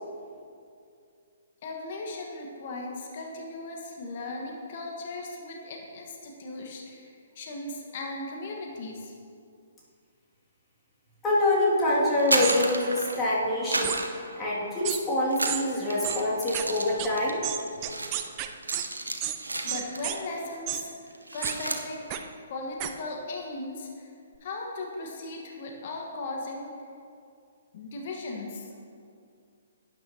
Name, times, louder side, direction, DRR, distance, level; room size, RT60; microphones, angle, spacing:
voice 1, 1.6-9.1 19.6-24.1 24.4-26.7 27.7-28.7, left 2 dB, 50° left, 0 dB, 1.4 m, -37 dB
voice 2, 11.2-14.0 14.4-17.4, left 1 dB, 15° left, -7 dB, 2.4 m, -25 dB
sound 1, 12.1-13.3 13.7-14.9 15.3-20.2 20.5-20.8 21.1-21.9, right 2 dB, 85° right, 0.9 m, -32 dB
sound 2, 12.4-12.6 13.8-14.0 14.8-15.0 15.5-15.6 16.0-16.2 16.5-16.6 17.0-17.1 17.4-18.9 19.2-19.4 19.7-20.2 20.7-20.8 21.4-21.5 22.1-22.2 22.8-22.9, right 12 dB, 30° right, 0.6 m, -31 dB
12.0 x 9.6 x 2.9 m, 2.4 s
figure-of-eight pair, 130°, 0 cm